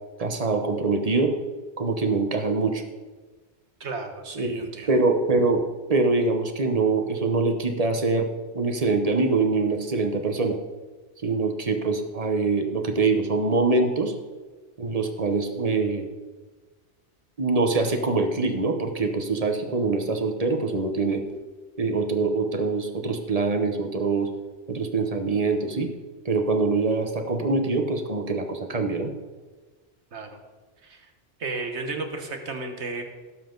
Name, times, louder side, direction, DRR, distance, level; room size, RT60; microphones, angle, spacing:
voice 1, 0.2-1.3 1.8-2.8 4.3-5.6 5.9-8.3 8.5-10.6 11.2-14.1 14.8-16.1 17.4-21.2 21.8-24.3 24.7-25.9 26.2-29.1, right 3 dB, 35° right, 5 dB, 1.1 m, -24 dB
voice 2, 3.8-4.9 30.1-30.4 30.8-31.1 31.4-33.0, right 3 dB, 70° right, 5 dB, 1.6 m, -33 dB
17.0 x 7.6 x 3.9 m, 1.3 s
omnidirectional pair, 1.2 m